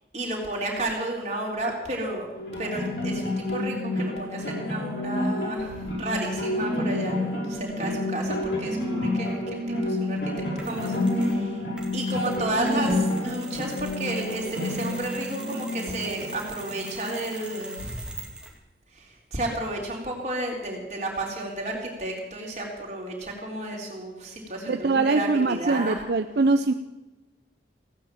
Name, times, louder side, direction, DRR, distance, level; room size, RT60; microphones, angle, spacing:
voice 1, 0.1-2.3 2.6-11.6 11.9-18.1 18.9-26.0, right 1 dB, 40° right, -1 dB, 3.7 m, -32 dB
sound 1, 2.3-17.3, left 1 dB, 80° left, 5.0 m, -29 dB
Mechanisms, 10.6-11.4 11.8-18.6, right 2 dB, 5° right, 2.1 m, -42 dB
voice 2, 24.7-26.7, right 3 dB, 70° right, 8 dB, 0.6 m, -23 dB
16.0 x 9.5 x 7.4 m, 1.1 s
head